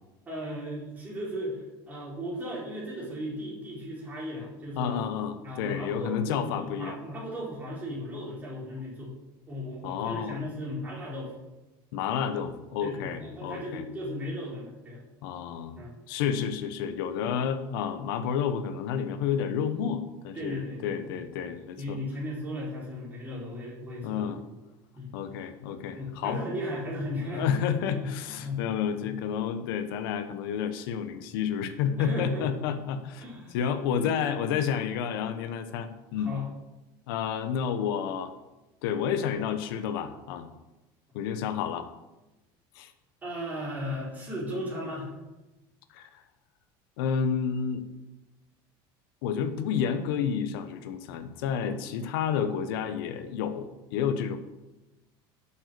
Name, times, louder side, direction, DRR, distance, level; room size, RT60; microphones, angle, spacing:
voice 1, 0.2-5.0 5.4-9.1 9.5-11.3 12.8-15.0 15.8-15.9 17.2-17.3 20.3-24.5 24.9-25.1 25.9-28.6 29.0-29.1 32.0-32.5 33.2-33.6 34.0-34.1 36.1-36.5 43.2-45.1 51.6-51.7, left 1 dB, 15° right, -5 dB, 4.2 m, -36 dB
voice 2, 4.8-7.0 9.8-10.4 11.9-13.8 15.2-15.7 16.1-22.0 24.0-24.4 25.1-26.4 27.3-33.2 33.5-36.3 37.1-38.3 38.8-40.5 41.1-41.9 42.7-42.9 45.9-46.1 47.0-47.8 49.2-54.4, left 7 dB, 90° left, 8 dB, 1.2 m, -30 dB
12.0 x 7.3 x 6.9 m, 1.0 s
cardioid pair, 180°, 12 cm